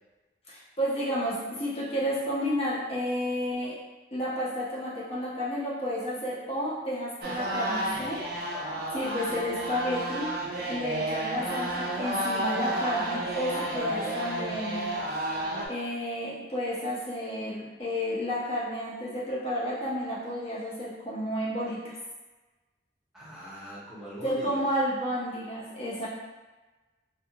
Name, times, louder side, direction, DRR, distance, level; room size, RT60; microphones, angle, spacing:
voice 1, 0.5-3.8 4.1-8.2 8.9-10.3 10.7-15.0 15.7-21.9 24.2-26.1, equal, 35° left, -7 dB, 0.7 m, -31 dB
sound 1, 7.2-15.7, right 1 dB, 60° right, 0.4 m, -31 dB
voice 2, 23.1-24.6, equal, 5° right, -9 dB, 0.8 m, -41 dB
2.4 x 2.3 x 2.7 m, 1.2 s
head